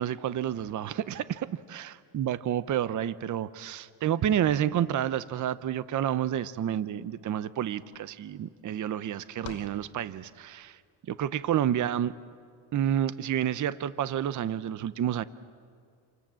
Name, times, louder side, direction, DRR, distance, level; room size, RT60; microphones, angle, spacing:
voice 1, 0.0-10.8 11.1-12.1 12.7-15.2, right 10 dB, 40° right, 16 dB, 0.7 m, -29 dB
sound 1, 7.6-10.7, left 8 dB, 75° left, 2.5 m, -49 dB
29.5 x 24.5 x 7.6 m, 2.3 s
cardioid pair, 125°, 46 cm